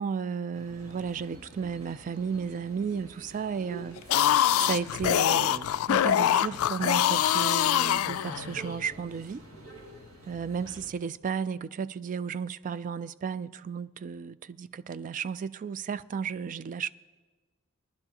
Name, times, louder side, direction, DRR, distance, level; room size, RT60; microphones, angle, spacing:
voice 1, 0.0-9.4 10.3-16.9, right 6 dB, 40° right, 0.3 m, -34 dB
sound 1, 0.5-10.9, right 1 dB, 75° right, 2.2 m, -48 dB
sound 2, 4.0-8.7, left 11 dB, 75° left, 0.3 m, -24 dB
19.5 x 11.5 x 2.9 m
head